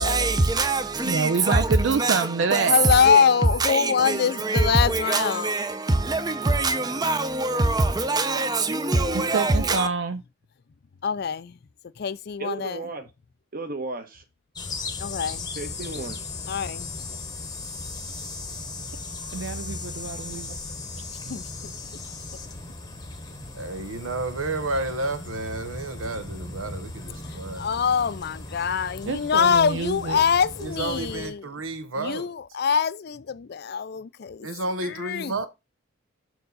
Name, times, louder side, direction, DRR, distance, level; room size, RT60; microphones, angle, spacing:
voice 1, 0.0-3.2 3.6-9.9, right 2 dB, 20° right, 0.6 m, -24 dB
voice 2, 1.0-2.8 9.1-10.2 19.3-20.5 21.2-21.3 29.1-30.2, right 5 dB, 65° right, 0.4 m, -27 dB
voice 3, 2.6-5.6 11.0-11.6 12.0-12.8 15.0-15.5 16.5-16.9 21.1-21.7 27.3-31.5 32.0-34.5 34.8-35.3, left 6 dB, 50° left, 0.4 m, -24 dB
voice 4, 12.4-13.1 13.5-14.2 15.5-16.2, right 3 dB, 45° right, 1.2 m, -34 dB
sound 1, 14.5-31.3, left 3 dB, 20° left, 0.9 m, -37 dB
voice 5, 23.5-27.7 30.6-32.3 34.4-35.5, right 2 dB, 90° right, 1.0 m, -31 dB
6.3 x 4.6 x 4.0 m
head